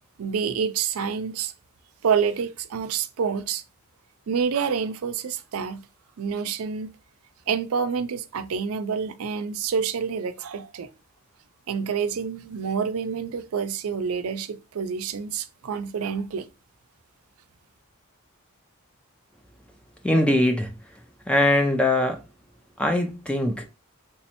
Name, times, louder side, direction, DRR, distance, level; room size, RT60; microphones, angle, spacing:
voice 1, 0.2-1.5 2.0-3.6 4.3-5.8 6.2-6.9 7.5-10.9 11.7-16.4, right 6 dB, 75° right, 0.4 m, -27 dB
voice 2, 20.0-20.7 21.3-22.2 22.8-23.6, left 1 dB, 5° left, 0.4 m, -21 dB
3.5 x 3.1 x 2.9 m
head